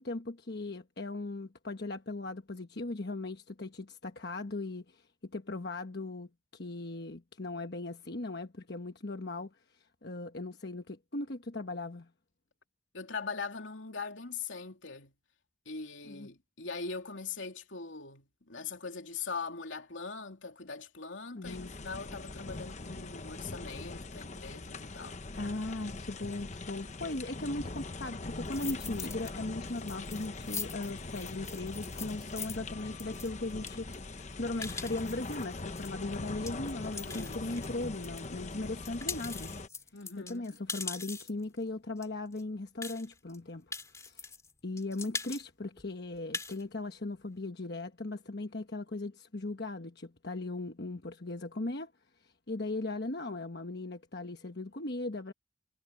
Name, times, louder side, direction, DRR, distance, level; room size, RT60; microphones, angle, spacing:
voice 1, 0.0-12.1 16.1-16.3 21.3-21.7 24.9-39.5 40.2-43.7 44.0-44.3 44.6-51.9 52.2-55.3, left 2 dB, 55° left, 1.2 m, -38 dB
voice 2, 12.9-15.1 15.6-25.2 37.0-37.8 39.9-40.5, left 4 dB, 75° left, 3.0 m, -41 dB
sound 1, 21.4-39.7, left 3 dB, 35° left, 0.9 m, -42 dB
sound 2, 28.5-29.3 29.7-38.3 38.6-41.4 42.0-42.1 42.3-42.4 42.8-43.4 43.7-44.5 44.8-45.4 45.8-45.9 46.2-46.6, left 4 dB, 15° left, 2.5 m, -42 dB
head